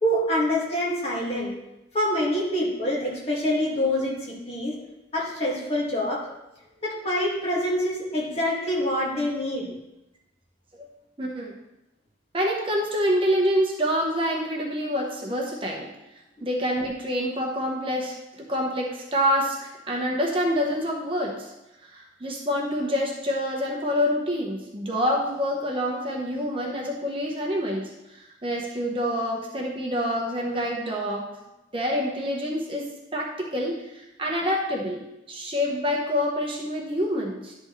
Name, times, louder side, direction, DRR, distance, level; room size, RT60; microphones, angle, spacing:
voice 1, 0.0-1.5 1.9-4.7 5.1-6.2 6.8-9.7 16.4-16.5, left 1 dB, 30° left, -5 dB, 2.0 m, -26 dB
voice 2, 11.2-11.5 12.3-15.9 16.4-21.5 21.8-31.3 31.7-37.5, equal, 30° right, -1 dB, 1.0 m, -27 dB
11.5 x 6.2 x 3.2 m, 0.93 s
head